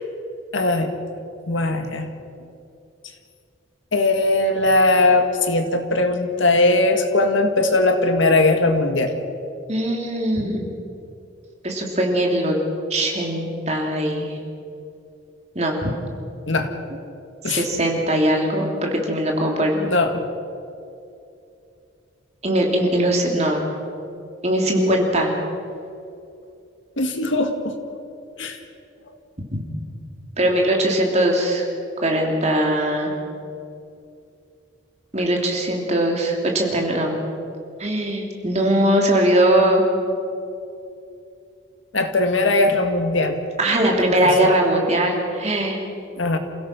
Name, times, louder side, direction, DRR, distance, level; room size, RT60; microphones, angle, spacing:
voice 1, 0.5-0.9 1.5-2.1 3.9-9.1 16.5-16.7 17.4-17.6 19.8-20.2 27.0-27.8 28.4-28.6 41.9-43.4 43.8-44.5 46.2-46.4, left 2 dB, 80° left, 6 dB, 1.9 m, -19 dB
voice 2, 9.7-10.7 11.6-12.6 12.9-14.3 15.5-15.9 17.4-19.8 22.4-23.7 24.4-25.3 29.5-29.6 30.4-31.7 32.0-33.1 35.1-37.2 37.8-39.8 43.6-45.8, right 1 dB, 35° right, 0 dB, 3.0 m, -20 dB
28.0 x 16.5 x 6.2 m, 2.6 s
head